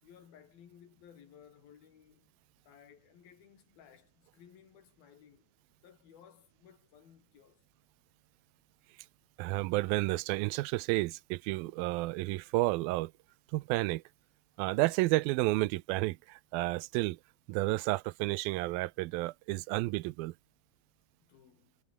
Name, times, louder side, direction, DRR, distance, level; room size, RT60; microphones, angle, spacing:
voice 1, 0.0-2.3 2.6-5.5 5.8-7.7 21.2-21.8, left 8 dB, 80° left, 4.5 m, -58 dB
voice 2, 9.4-13.1 13.5-14.0 14.6-17.2 17.5-20.3, right 20 dB, 85° right, 2.5 m, -31 dB
omnidirectional pair, 4.2 m